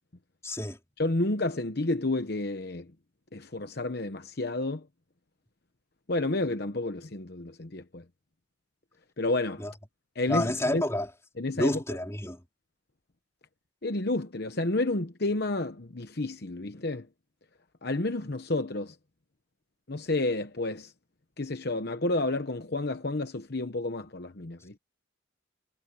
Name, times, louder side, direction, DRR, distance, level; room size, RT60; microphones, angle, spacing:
voice 1, 0.4-0.8 9.6-9.7 10.3-11.1 11.5-12.4, left 1 dB, 15° left, 4.0 m, -29 dB
voice 2, 1.0-2.9 3.3-4.9 6.1-8.0 9.2-9.6 10.2-10.8 11.4-11.8 13.8-17.1 17.8-18.9 19.9-20.9 21.4-24.8, left 2 dB, 50° left, 1.0 m, -30 dB
head